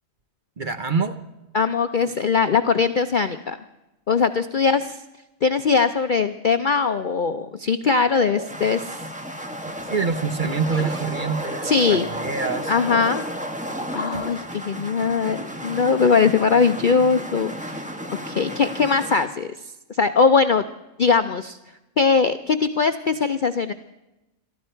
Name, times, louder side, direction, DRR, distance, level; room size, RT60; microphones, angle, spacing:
voice 1, 0.6-1.2 9.6-12.7 14.1-14.2, right 5 dB, 40° right, 8 dB, 0.9 m, -26 dB
voice 2, 1.5-3.6 4.1-5.0 5.4-9.0 11.6-12.1 12.7-13.2 13.9-17.9 18.3-19.5 19.9-20.6 21.0-21.6 22.0-23.7, left 5 dB, 55° left, 9 dB, 0.6 m, -20 dB
sound 1, 8.2-19.3, equal, 5° right, 1.1 m, -33 dB
22.5 x 13.5 x 4.5 m, 0.98 s
omnidirectional pair, 1.5 m